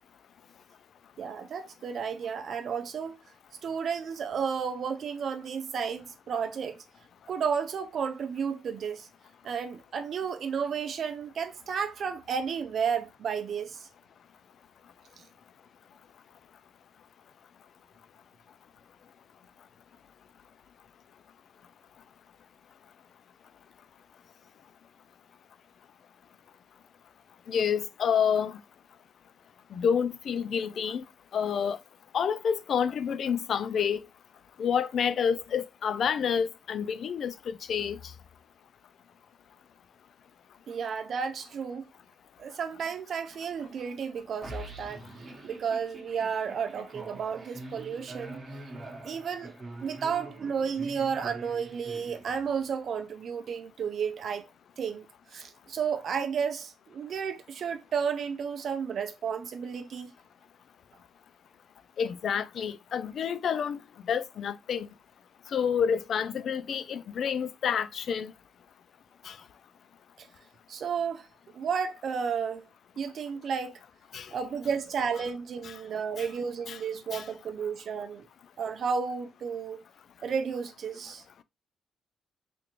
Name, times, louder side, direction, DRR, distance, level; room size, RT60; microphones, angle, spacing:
voice 1, 1.2-3.2 3.6-6.8 7.3-9.1 9.4-13.9 40.7-41.8 42.4-45.0 45.4-48.4 49.0-49.5 49.8-54.5 54.8-55.1 55.3-60.1 70.2-70.3 70.7-71.3 71.5-72.7 73.0-73.7 74.3-78.3 78.6-79.8 80.2-81.2, right 6 dB, 60° right, 0.4 m, -32 dB
voice 2, 27.5-28.6 29.7-31.0 31.3-31.8 32.1-34.0 34.6-38.0 62.0-63.8 64.1-64.9 65.5-68.3 69.3-69.4 74.1-74.3 75.6-75.7 76.2-76.3 76.7-76.8 77.1-77.2, left 7 dB, 60° left, 0.3 m, -28 dB
sound 1, 44.4-52.7, right 2 dB, 35° right, 1.1 m, -44 dB
3.4 x 2.4 x 3.0 m
cardioid pair, 90°, 0 cm